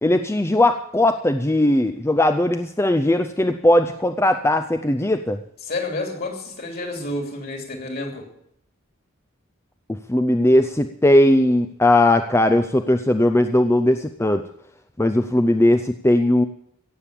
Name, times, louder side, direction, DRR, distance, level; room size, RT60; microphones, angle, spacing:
voice 1, 0.0-5.4 9.9-14.4 15.0-16.4, left 1 dB, 10° left, 8 dB, 0.5 m, -18 dB
voice 2, 5.6-8.3, left 2 dB, 45° left, 3 dB, 3.3 m, -29 dB
16.5 x 7.5 x 8.5 m, 0.72 s
head